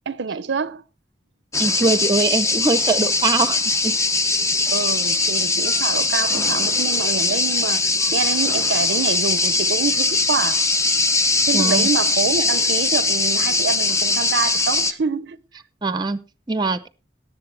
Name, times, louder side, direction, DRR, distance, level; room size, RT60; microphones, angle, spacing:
voice 1, 0.1-0.8 4.7-10.7 11.5-15.4, right 5 dB, 85° right, 0.6 m, -26 dB
sound 1, 1.5-14.9, left 3 dB, 15° left, 0.7 m, -20 dB
voice 2, 1.6-3.9 11.5-11.9 15.8-16.9, right 3 dB, 25° right, 0.7 m, -22 dB
18.0 x 7.5 x 3.3 m
head